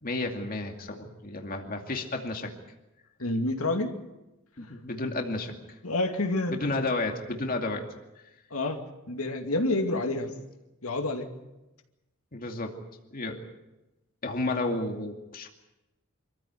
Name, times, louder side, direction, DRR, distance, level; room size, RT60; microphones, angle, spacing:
voice 1, 0.0-2.5 4.6-5.5 6.5-7.8 12.3-12.8 13.1-13.5 14.2-15.5, left 2 dB, 40° left, 3 dB, 2.4 m, -32 dB
voice 2, 3.2-3.9 5.8-6.6 8.5-8.8 9.1-10.3 10.8-11.3, left 2 dB, 80° left, 4 dB, 2.5 m, -28 dB
26.0 x 15.0 x 9.4 m, 0.99 s
head